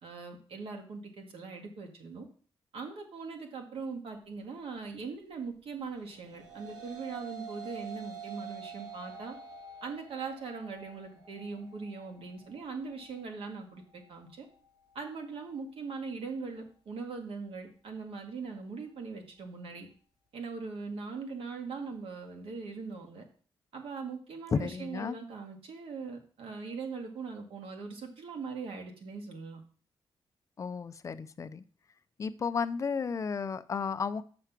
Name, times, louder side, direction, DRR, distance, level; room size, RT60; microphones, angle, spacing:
voice 1, 0.0-2.3 2.7-9.4 9.8-14.5 14.9-19.9 20.3-23.2 23.7-29.6, right 4 dB, 80° right, 3 dB, 2.0 m, -41 dB
sound 1, 6.0-15.2, right 6 dB, 45° right, 3.4 m, -48 dB
voice 2, 24.5-25.2 30.6-31.6 32.2-34.2, left 5 dB, 35° left, 12 dB, 0.5 m, -33 dB
6.7 x 6.1 x 5.9 m, 0.43 s
wide cardioid pair, 165°, 9 cm